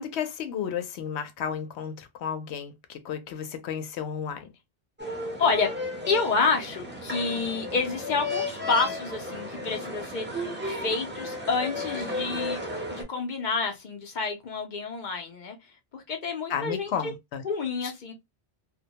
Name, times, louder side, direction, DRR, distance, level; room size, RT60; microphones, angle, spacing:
voice 1, 0.0-4.5 16.5-17.4 17.8-17.9, left 7 dB, 85° left, 0.9 m, -33 dB
sound 1, 5.0-13.0, left 2 dB, 15° right, 0.6 m, -34 dB
voice 2, 5.4-5.7 6.1-12.6 12.9-15.6 15.9-17.1 17.4-18.1, left 4 dB, 55° left, 0.6 m, -29 dB
2.2 x 2.1 x 2.7 m
omnidirectional pair, 1.1 m